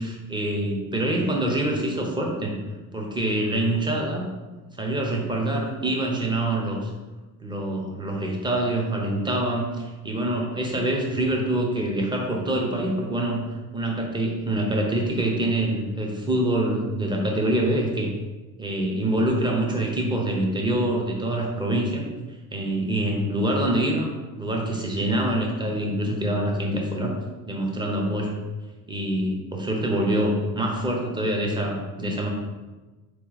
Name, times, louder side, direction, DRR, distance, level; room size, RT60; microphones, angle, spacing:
voice 1, 0.0-2.5 2.9-4.3 4.8-6.9 7.4-13.4 13.7-18.1 18.6-22.0 22.5-24.1 24.4-27.1 27.5-28.4 28.9-32.3, right 1 dB, 10° right, 0 dB, 0.8 m, -25 dB
3.9 x 3.1 x 3.9 m, 1.2 s
cardioid pair, 110°, 42 cm